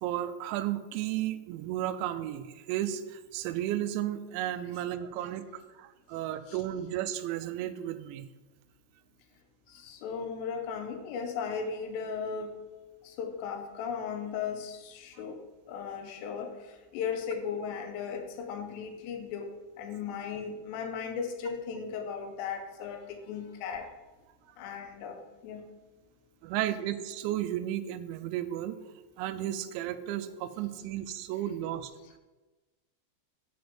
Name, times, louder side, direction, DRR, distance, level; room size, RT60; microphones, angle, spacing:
voice 1, 0.0-8.3 26.4-28.8 29.2-31.9, right 12 dB, 90° right, 12 dB, 2.9 m, -33 dB
voice 2, 9.7-12.6 13.0-15.4 15.7-23.9 24.6-25.7, left 6 dB, 85° left, 5 dB, 3.0 m, -36 dB
9.3 x 5.1 x 5.1 m, 1.2 s
omnidirectional pair, 5.1 m